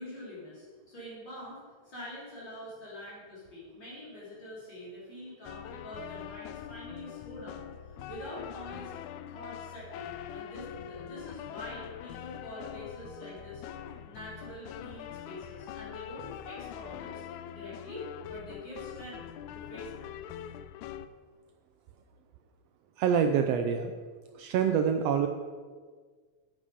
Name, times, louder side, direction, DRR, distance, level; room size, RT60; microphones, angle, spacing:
voice 1, 0.0-7.7 8.1-8.9 9.3-13.6 14.0-17.2 17.5-19.2 19.5-20.2, left 1 dB, 35° left, -8 dB, 3.8 m, -45 dB
sound 1, 5.4-21.1, left 10 dB, 85° left, 1.9 m, -43 dB
voice 2, 23.0-23.9 24.4-25.3, right 7 dB, 85° right, 6 dB, 1.4 m, -26 dB
9.0 x 8.7 x 5.1 m, 1.6 s
omnidirectional pair, 3.4 m